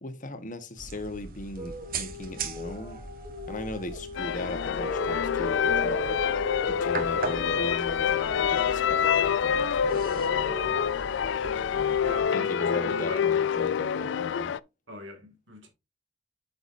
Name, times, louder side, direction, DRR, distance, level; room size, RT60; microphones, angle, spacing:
voice 1, 0.0-3.0 3.5-6.2 6.7-10.8 11.7-12.0 12.3-14.5, left 1 dB, 45° left, 1.2 m, -38 dB
sound 1, 0.8-12.2, right 4 dB, 50° right, 1.1 m, -40 dB
sound 2, 1.6-10.8, left 2 dB, 30° right, 1.8 m, -39 dB
sound 3, 4.2-14.6, left 8 dB, 65° left, 0.3 m, -26 dB
voice 2, 12.0-13.3 14.9-15.7, equal, 70° right, 2.4 m, -42 dB
8.2 x 6.9 x 2.6 m
head